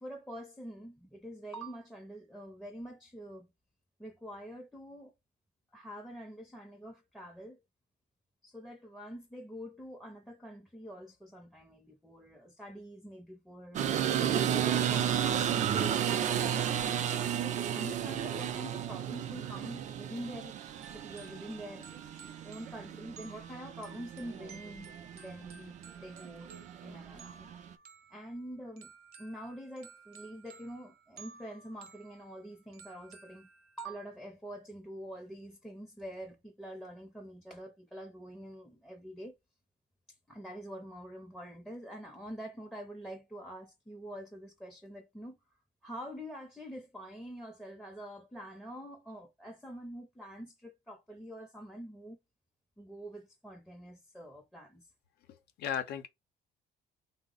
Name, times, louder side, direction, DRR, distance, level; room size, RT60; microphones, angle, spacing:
voice 1, 0.0-3.5 4.0-5.1 5.7-7.6 8.4-14.1 14.4-16.8 17.3-20.6 20.9-21.9 22.4-26.5 26.8-27.5 28.1-28.9 29.2-33.5 33.8-39.3 40.3-45.4 45.8-52.2 52.8-54.9, right 1 dB, 5° left, 0.6 m, -46 dB
sound 1, 13.7-27.7, right 9 dB, 45° right, 0.4 m, -33 dB
sound 2, 20.8-33.8, right 5 dB, 65° right, 0.8 m, -56 dB
voice 2, 55.3-56.1, left 9 dB, 75° left, 0.6 m, -36 dB
3.3 x 2.0 x 3.8 m
cardioid pair, 110°, 17 cm